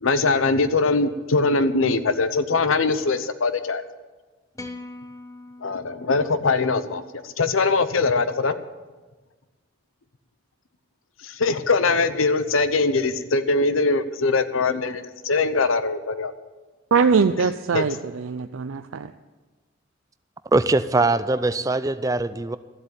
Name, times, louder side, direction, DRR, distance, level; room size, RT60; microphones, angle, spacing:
voice 1, 0.0-3.8 5.6-8.5 11.2-16.3 17.7-17.8, left 3 dB, 85° left, 12 dB, 0.8 m, -22 dB
sound 1, 4.5-6.9, left 2 dB, 15° left, 0.7 m, -42 dB
voice 2, 16.9-19.1, right 5 dB, 90° right, 8 dB, 0.5 m, -22 dB
voice 3, 20.5-22.6, right 2 dB, 15° right, 13 dB, 0.3 m, -22 dB
13.5 x 7.8 x 9.0 m, 1.3 s
head